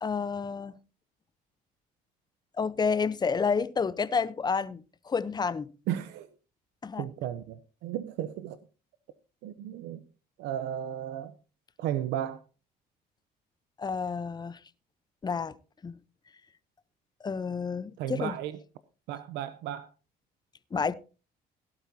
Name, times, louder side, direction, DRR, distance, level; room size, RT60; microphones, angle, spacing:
voice 1, 0.0-0.8 2.6-5.7 6.8-7.0 13.8-14.6 15.2-15.5 15.8-16.0 17.2-18.3 20.7-20.9, left 5 dB, 25° left, 0.8 m, -30 dB
voice 2, 5.9-6.3 7.0-8.6 9.4-10.0 10.4-11.3 11.8-12.4 18.0-18.6 19.1-19.9, right 11 dB, 90° right, 0.8 m, -34 dB
17.5 x 12.0 x 2.8 m
cardioid pair, 110°, 17 cm